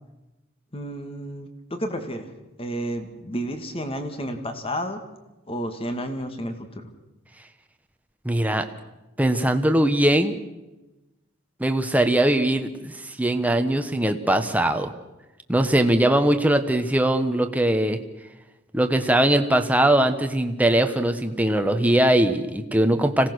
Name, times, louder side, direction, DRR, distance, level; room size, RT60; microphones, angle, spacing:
voice 1, 0.7-2.3 2.6-5.0 5.5-6.7, equal, 30° left, 7 dB, 2.1 m, -31 dB
voice 2, 8.2-8.7 9.2-10.4 11.6-12.9 13.2-14.9 15.5-18.0 18.7-23.3, right 1 dB, 10° right, 6 dB, 1.3 m, -21 dB
25.5 x 17.5 x 6.4 m, 1.0 s
head